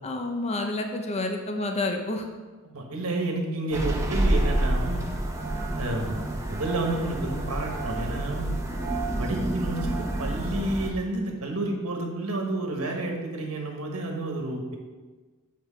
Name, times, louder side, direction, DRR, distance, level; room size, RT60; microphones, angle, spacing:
voice 1, 0.0-2.2, left 2 dB, 30° left, 4 dB, 0.7 m, -29 dB
voice 2, 2.7-5.0 5.8-8.5 9.2-14.8, right 2 dB, 70° right, 2 dB, 1.3 m, -30 dB
sound 1, 3.7-10.9, right 1 dB, 15° right, 0.8 m, -28 dB
7.9 x 4.6 x 4.9 m, 1.3 s
head